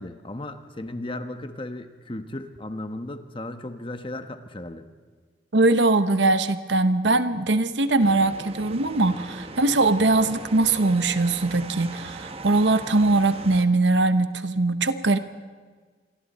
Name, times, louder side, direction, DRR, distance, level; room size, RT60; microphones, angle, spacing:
voice 1, 0.0-4.8, left 1 dB, 30° left, 8 dB, 1.2 m, -35 dB
voice 2, 5.5-15.2, right 2 dB, 85° right, 11 dB, 1.1 m, -21 dB
sound 1, 8.0-13.6, right 3 dB, 35° right, 1.2 m, -39 dB
27.5 x 22.5 x 4.3 m, 1.5 s
head